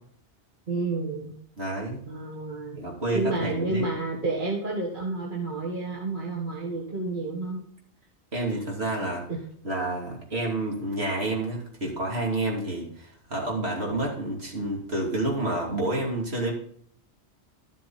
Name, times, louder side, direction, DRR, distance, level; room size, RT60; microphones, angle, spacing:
voice 1, 0.7-1.4 2.1-2.8 3.1-7.6 9.0-9.4, right 3 dB, 45° right, -3 dB, 1.9 m, -30 dB
voice 2, 1.6-2.0 2.7-3.9 8.3-9.3 9.6-16.5, right 2 dB, 65° right, -2 dB, 3.3 m, -29 dB
12.5 x 7.3 x 4.2 m, 0.62 s
omnidirectional pair, 1.2 m